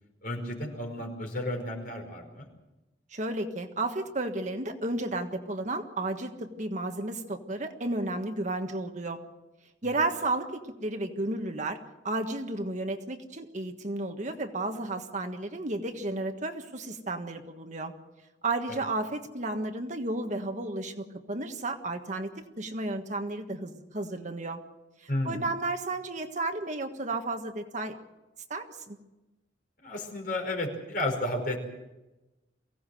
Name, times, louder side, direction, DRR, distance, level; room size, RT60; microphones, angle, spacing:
voice 1, 0.2-2.5 9.8-9.9 25.1-25.4 29.8-31.6, left 1 dB, 50° left, 3 dB, 4.9 m, -32 dB
voice 2, 3.1-9.2 9.8-11.8 12.0-17.9 18.4-22.3 22.6-24.6 25.0-27.9 28.5-29.0, right 2 dB, 40° right, 5 dB, 1.5 m, -33 dB
23.5 x 17.0 x 7.8 m, 1.0 s
head